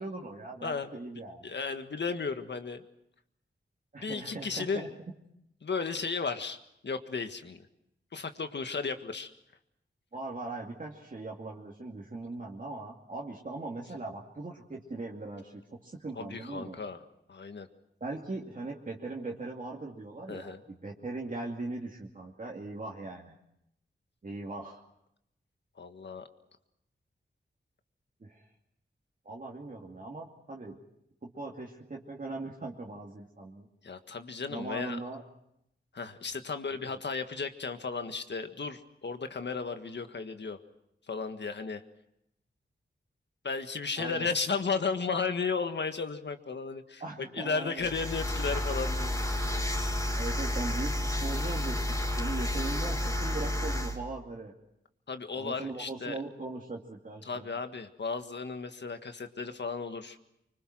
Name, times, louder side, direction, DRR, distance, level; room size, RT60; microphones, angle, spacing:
voice 1, 0.0-1.5 3.9-4.9 10.1-16.8 18.0-23.4 24.2-24.8 28.2-28.5 29.2-30.8 31.2-33.7 34.5-35.2 36.8-37.0 44.0-44.3 47.0-47.9 50.2-54.5 55.4-57.5, right 2 dB, 45° right, -3 dB, 2.5 m, -40 dB
voice 2, 1.4-2.8 4.0-4.9 5.6-6.6 6.8-7.6 8.1-9.3 16.2-17.0 17.3-17.7 20.3-20.6 25.8-26.3 33.8-35.0 35.9-40.6 41.1-41.8 43.4-49.5 55.1-56.2 57.2-60.2, left 4 dB, 70° left, 8 dB, 1.7 m, -34 dB
sound 1, 47.8-54.0, left 1 dB, 15° left, 4.6 m, -31 dB
25.0 x 25.0 x 6.2 m, 0.80 s
wide cardioid pair, 85°, 19 cm